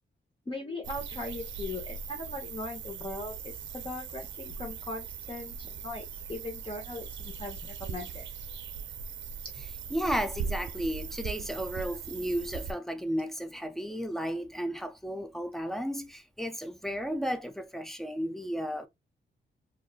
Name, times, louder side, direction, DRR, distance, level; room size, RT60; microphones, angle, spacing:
voice 1, 0.5-8.2, left 2 dB, 25° left, 0.8 m, -39 dB
sound 1, 0.8-12.7, right 6 dB, 80° right, 0.5 m, -39 dB
voice 2, 9.9-18.9, equal, ahead, 0.4 m, -33 dB
3.6 x 2.4 x 2.2 m
wide cardioid pair, 135°, 19 cm